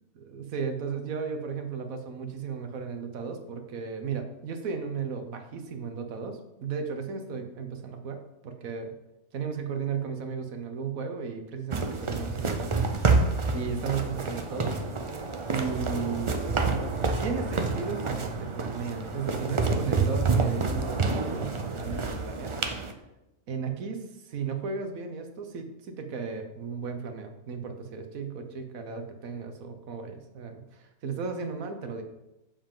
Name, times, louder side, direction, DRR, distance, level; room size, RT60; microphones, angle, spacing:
voice 1, 0.1-9.0 9.3-13.1 13.5-14.8 15.5-16.8 17.2-22.5 23.5-32.0, right 5 dB, 75° right, 6 dB, 1.4 m, -35 dB
sound 1, 11.7-22.9, right 4 dB, 45° right, 0.3 m, -28 dB
7.2 x 7.0 x 3.7 m, 0.96 s
omnidirectional pair, 1.5 m